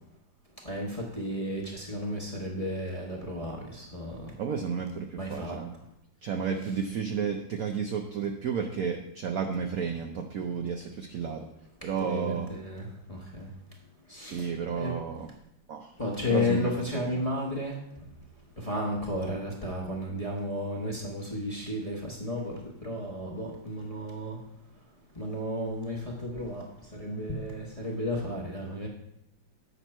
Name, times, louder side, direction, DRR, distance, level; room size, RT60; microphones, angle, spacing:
voice 1, 0.6-4.3 5.2-5.6 12.0-13.5 14.2-14.5 14.7-14.9 16.0-17.8 18.7-22.5 22.8-24.4 25.2-26.6 26.9-28.9, left 1 dB, 25° left, -3 dB, 0.9 m, -33 dB
voice 2, 4.4-5.7 6.2-11.5 11.8-12.5 14.1-15.3 15.7-15.9 16.3-17.1, right 6 dB, 70° right, 3 dB, 0.8 m, -32 dB
8.2 x 5.9 x 4.3 m, 0.81 s
omnidirectional pair, 2.1 m